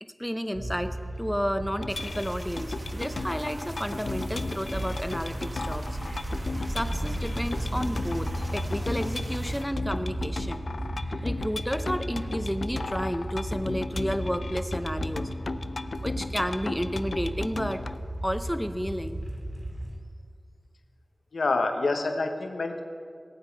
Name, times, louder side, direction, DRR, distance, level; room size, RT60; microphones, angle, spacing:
voice 1, 0.0-5.9 6.7-10.6 11.2-15.3 16.0-17.8 18.2-19.2, equal, 5° left, 9 dB, 0.7 m, -31 dB
sound 1, 0.5-20.0, right 1 dB, 60° right, 2.6 m, -35 dB
sound 2, 1.8-18.0, left 3 dB, 65° left, 0.4 m, -36 dB
sound 3, 1.9-9.6, right 1 dB, 35° right, 1.2 m, -42 dB
voice 2, 21.3-22.8, left 3 dB, 80° left, 5 dB, 1.0 m, -27 dB
19.0 x 8.7 x 4.6 m, 2.2 s
wide cardioid pair, 85°, 0 cm